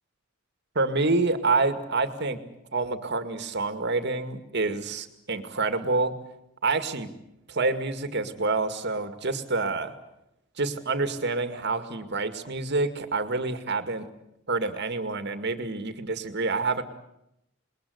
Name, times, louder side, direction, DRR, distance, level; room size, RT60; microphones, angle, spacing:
voice 1, 0.8-2.4 2.7-6.2 6.6-7.1 7.5-9.9 10.6-14.1 14.5-16.8, right 3 dB, 60° right, 9 dB, 2.2 m, -27 dB
27.0 x 21.5 x 8.0 m, 0.81 s
head